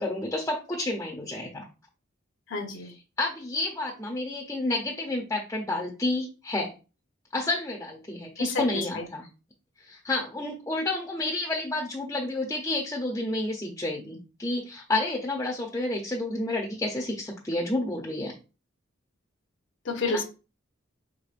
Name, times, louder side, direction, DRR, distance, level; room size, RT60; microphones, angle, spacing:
voice 1, 0.0-1.7 3.2-6.7 7.3-9.3 9.8-18.3 20.1-20.2, left 2 dB, 15° left, -1 dB, 0.6 m, -30 dB
voice 2, 2.5-2.9 8.4-9.0 19.8-20.2, left 3 dB, 65° left, 4 dB, 0.8 m, -30 dB
5.0 x 3.5 x 2.4 m, 0.31 s
head